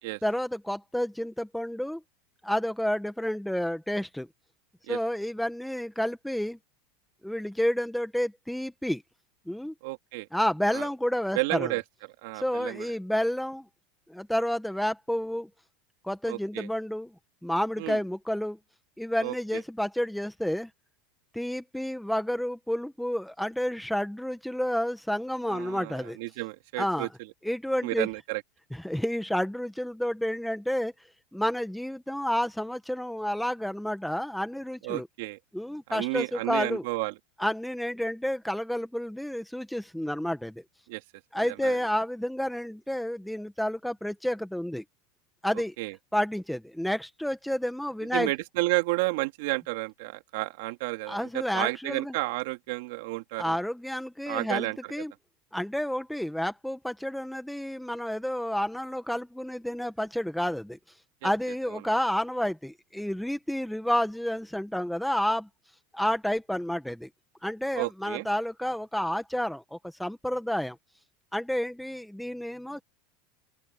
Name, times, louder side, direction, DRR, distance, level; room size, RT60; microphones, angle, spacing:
voice 1, 0.2-2.0 2.4-4.3 4.9-6.6 7.2-9.0 9.5-9.7 10.3-11.7 12.3-13.7 14.1-15.5 16.0-17.1 17.4-18.6 19.0-20.7 21.3-26.2 26.8-27.1 27.4-28.1 28.7-30.9 31.3-35.1 35.5-36.8 37.4-40.6 41.3-44.8 45.4-45.7 46.1-48.3 51.1-52.1 53.4-55.1 55.5-60.8 61.2-65.5 65.9-67.1 67.4-70.8 71.3-72.8, equal, ahead, 1.2 m, -30 dB
voice 2, 9.8-10.3 10.7-10.9 11.3-11.8 12.2-12.9 16.3-16.7 17.8-18.0 19.2-19.6 25.5-27.1 27.8-28.4 34.8-35.4 35.9-37.1 40.9-41.0 41.3-41.8 45.8-46.0 48.1-53.6 54.3-54.9 61.2-61.3 61.7-61.8 67.8-68.3, right 22 dB, 65° right, 2.6 m, -31 dB
open air
supercardioid pair, 155°, 0 cm